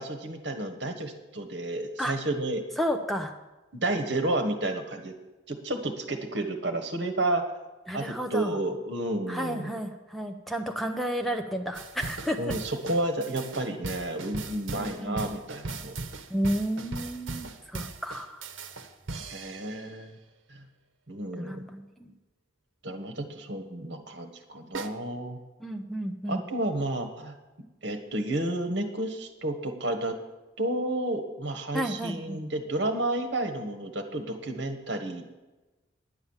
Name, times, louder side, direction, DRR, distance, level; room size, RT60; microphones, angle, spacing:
voice 1, 0.0-2.6 3.7-5.1 5.5-7.4 7.9-9.7 12.4-15.9 19.3-20.2 20.5-20.6 21.1-21.6 22.8-25.4 26.3-27.3 27.8-30.2 30.6-35.3, right 1 dB, 65° right, 6 dB, 1.4 m, -31 dB
voice 2, 2.8-3.3 7.9-8.6 9.3-12.6 14.7-15.2 16.3-18.4 21.4-22.1 25.6-26.4 31.7-32.4, equal, ahead, 5 dB, 0.6 m, -32 dB
sound 1, 11.7-19.9 24.7-24.9, right 3 dB, 85° right, 0.9 m, -38 dB
10.0 x 8.4 x 7.2 m, 1.1 s
head